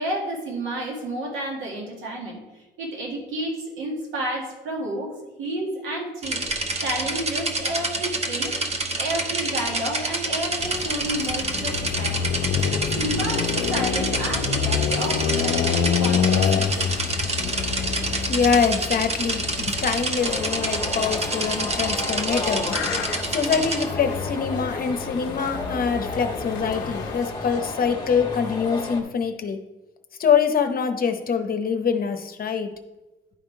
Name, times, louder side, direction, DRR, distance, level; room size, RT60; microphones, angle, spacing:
voice 1, 0.0-2.4 2.8-5.1 5.4-6.4 6.8-8.5 9.0-12.3 12.7-16.7, right 1 dB, 80° right, -1 dB, 1.8 m, -30 dB
sound 1, 6.2-23.8, right 2 dB, 30° right, 1.0 m, -28 dB
sound 2, 10.6-27.2, left 7 dB, 80° left, 0.5 m, -28 dB
voice 2, 18.3-22.9 23.3-29.6 30.2-32.7, left 6 dB, 45° left, 7 dB, 0.8 m, -24 dB
sound 3, 20.2-29.0, left 2 dB, 20° left, 1.3 m, -32 dB
10.5 x 3.6 x 4.5 m, 1.1 s
cardioid pair, 90°, 20 cm